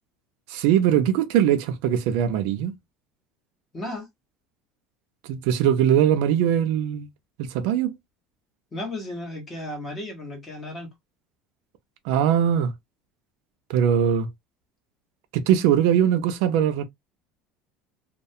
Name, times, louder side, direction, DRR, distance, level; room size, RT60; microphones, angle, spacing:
voice 1, 0.5-2.7 5.2-7.1 7.4-7.9 12.0-12.7 13.7-14.3 15.3-16.8, right 9 dB, 70° right, 0.4 m, -21 dB
voice 2, 3.7-4.1 8.7-10.9, left 1 dB, 15° left, 1.1 m, -34 dB
2.3 x 2.2 x 2.6 m
cardioid pair, 165°, 0 cm